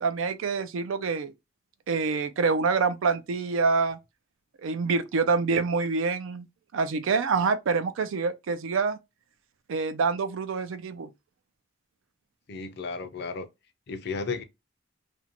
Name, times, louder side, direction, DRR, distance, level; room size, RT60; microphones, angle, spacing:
voice 1, 0.0-1.3 1.9-4.0 4.6-6.5 6.7-9.0 9.7-11.1, right 4 dB, 80° right, 0.4 m, -26 dB
voice 2, 12.5-13.5 13.9-14.4, left 4 dB, 55° left, 0.4 m, -33 dB
2.5 x 2.1 x 2.8 m
head